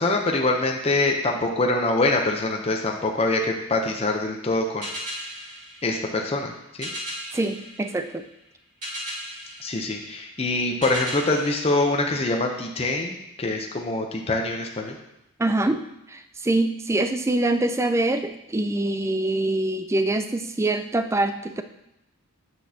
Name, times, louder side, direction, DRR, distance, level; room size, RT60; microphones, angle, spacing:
voice 1, 0.0-4.9 5.2-5.3 5.8-6.5 6.8-6.9 9.6-15.0, left 2 dB, 25° left, 2 dB, 0.6 m, -24 dB
sound 1, 4.8-12.7, equal, 35° right, 2.2 m, -38 dB
voice 2, 7.3-8.2 15.4-15.8 16.1-21.6, right 2 dB, 15° right, 9 dB, 0.3 m, -24 dB
8.9 x 6.1 x 2.8 m, 0.85 s
head